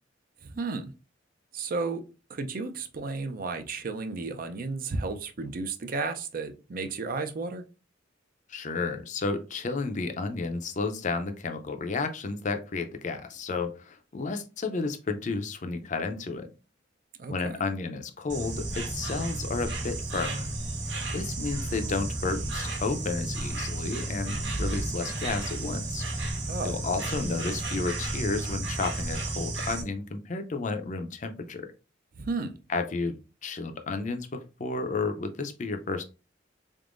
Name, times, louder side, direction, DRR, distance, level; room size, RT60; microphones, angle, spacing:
voice 1, 0.4-0.9 1.5-2.0 2.3-7.6 17.2-17.6 26.5-26.8 32.2-32.6, right 3 dB, 45° right, 0.5 m, -33 dB
voice 2, 8.5-16.5 17.3-20.4 21.1-26.0 26.6-31.7 32.7-36.0, left 3 dB, 40° left, 0.5 m, -32 dB
Insect, 18.3-29.8, right 2 dB, 65° right, 1.2 m, -32 dB
3.8 x 3.5 x 2.5 m
head